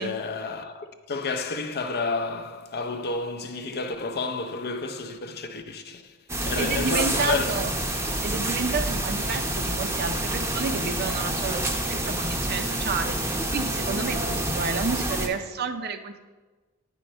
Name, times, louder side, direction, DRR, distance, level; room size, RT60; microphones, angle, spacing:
voice 1, 0.0-6.2 6.4-7.5, left 3 dB, 45° left, 0.6 m, -30 dB
sound 1, 6.3-15.3, right 1 dB, 10° right, 0.7 m, -28 dB
voice 2, 6.6-7.7 8.2-11.6 11.9-16.3, right 4 dB, 45° right, 0.6 m, -30 dB
9.9 x 4.4 x 5.3 m
head